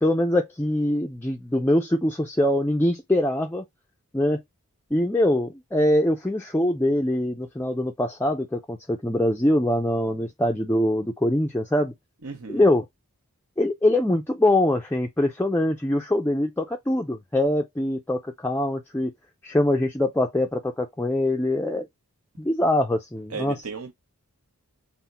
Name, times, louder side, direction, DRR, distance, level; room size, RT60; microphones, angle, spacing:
voice 1, 0.0-3.6 4.1-4.4 4.9-11.9 12.5-12.8 13.6-19.1 19.4-21.9 22.4-23.6, left 1 dB, 10° left, 0.4 m, -23 dB
voice 2, 12.2-12.6 23.3-23.9, right 5 dB, 75° right, 1.0 m, -35 dB
3.9 x 2.2 x 4.0 m
head